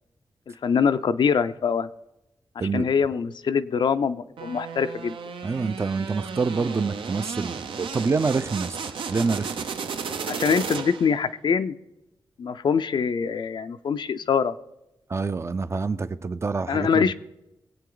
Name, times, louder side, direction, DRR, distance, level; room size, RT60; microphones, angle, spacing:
voice 1, 0.5-1.9 2.7-5.2 10.3-11.8 12.4-14.5 16.7-17.1, left 6 dB, 60° left, 11 dB, 0.5 m, -24 dB
sound 1, 4.4-11.2, right 6 dB, 80° right, 0.8 m, -34 dB
voice 2, 5.4-8.8 9.1-9.7 15.1-17.1, right 4 dB, 30° right, 12 dB, 0.5 m, -26 dB
21.0 x 8.4 x 3.9 m, 0.90 s
wide cardioid pair, 120°, 9 cm